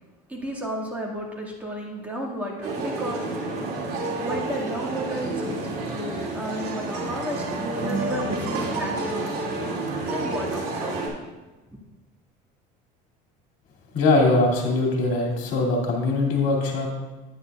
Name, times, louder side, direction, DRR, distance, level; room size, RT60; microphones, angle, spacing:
voice 1, 0.3-3.3 4.2-9.2 10.1-10.9, equal, 10° right, -3 dB, 2.0 m, -33 dB
sound 1, 2.6-11.1, right 2 dB, 55° right, 2.5 m, -29 dB
voice 2, 13.9-16.9, left 2 dB, 70° left, -1 dB, 2.6 m, -21 dB
9.9 x 9.5 x 2.4 m, 1.1 s
supercardioid pair, 115°, 18 cm